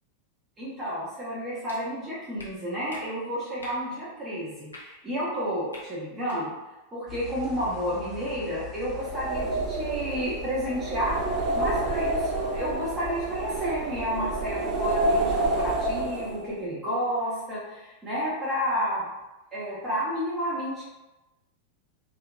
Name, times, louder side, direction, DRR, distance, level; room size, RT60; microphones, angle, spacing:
voice 1, 0.6-6.5 6.9-11.2 11.5-19.1 19.5-20.8, equal, 20° right, -8 dB, 0.9 m, -31 dB
sound 1, 1.7-1.8 2.4-2.5 2.9-3.0 3.6-3.8 4.7-4.8 5.7-5.8 6.2-6.4, left 2 dB, 75° left, 0.6 m, -44 dB
sound 2, 7.1-16.1, left 10 dB, 25° left, 0.5 m, -43 dB
sound 3, 9.0-16.6, right 2 dB, 35° right, 0.3 m, -29 dB
2.7 x 2.5 x 2.2 m, 1.0 s
figure-of-eight pair, 90°, 0 cm